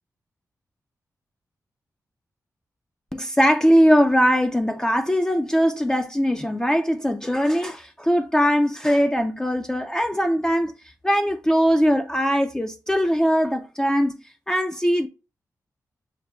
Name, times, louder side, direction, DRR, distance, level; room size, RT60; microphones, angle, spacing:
voice 1, 3.1-10.7 11.0-14.2 14.5-15.1, equal, 10° left, 0.4 m, -21 dB
6.5 x 2.2 x 3.1 m
wide cardioid pair, 85°, 6 cm